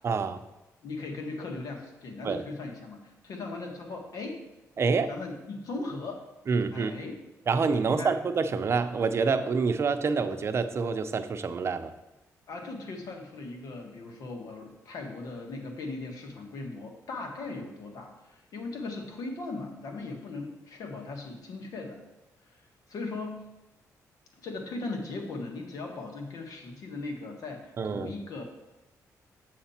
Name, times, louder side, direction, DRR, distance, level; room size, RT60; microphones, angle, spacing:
voice 1, 0.0-0.4 2.2-2.4 4.8-5.1 6.5-6.9 7.5-11.9 27.8-28.1, right 4 dB, 45° right, 9 dB, 0.7 m, -27 dB
voice 2, 0.8-4.4 5.1-6.2 6.7-7.2 7.8-8.1 12.5-22.0 22.5-22.6 22.9-23.5 24.4-28.4, left 3 dB, 70° left, 2 dB, 1.7 m, -38 dB
7.5 x 6.9 x 4.3 m, 0.99 s
cardioid pair, 95°, 6 cm